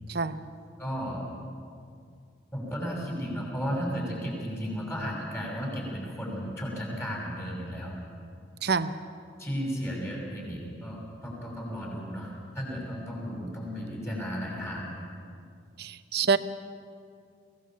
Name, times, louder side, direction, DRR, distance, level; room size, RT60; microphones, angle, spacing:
voice 1, 0.1-0.5 8.6-9.0 15.8-16.4, right 5 dB, 55° right, 12 dB, 0.8 m, -26 dB
voice 2, 0.8-1.2 2.5-8.0 9.4-15.1, equal, 15° left, -2 dB, 5.9 m, -34 dB
23.5 x 17.5 x 7.4 m, 2.3 s
head